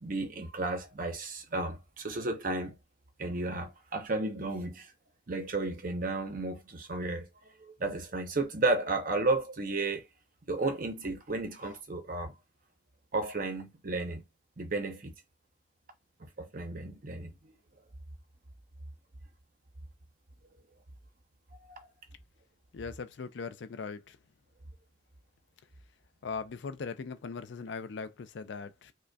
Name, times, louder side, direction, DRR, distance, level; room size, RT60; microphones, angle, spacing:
voice 1, 0.0-2.8 3.2-4.9 5.3-7.3 7.6-10.1 10.5-12.3 13.1-14.2 14.6-15.1 16.2-17.5 21.7-21.8, right 2 dB, 45° right, 0.7 m, -33 dB
voice 2, 22.7-24.2 26.2-28.9, left 5 dB, 65° left, 0.4 m, -39 dB
5.0 x 2.2 x 2.2 m
head